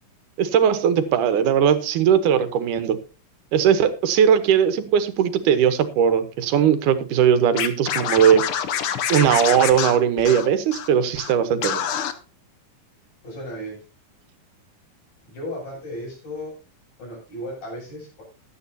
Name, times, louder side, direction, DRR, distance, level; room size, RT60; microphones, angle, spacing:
voice 1, 0.4-3.0 3.5-8.4 9.1-11.9, right 8 dB, 80° right, 11 dB, 2.5 m, -19 dB
Scratching (performance technique), 7.6-10.9 11.2-11.3 11.6-12.1, left 9 dB, 70° left, 1.3 m, -26 dB
voice 2, 13.2-13.8 15.3-16.5 17.0-18.2, left 1 dB, 90° left, -2 dB, 9.1 m, -35 dB
15.5 x 11.5 x 2.8 m, 0.33 s
omnidirectional pair, 3.7 m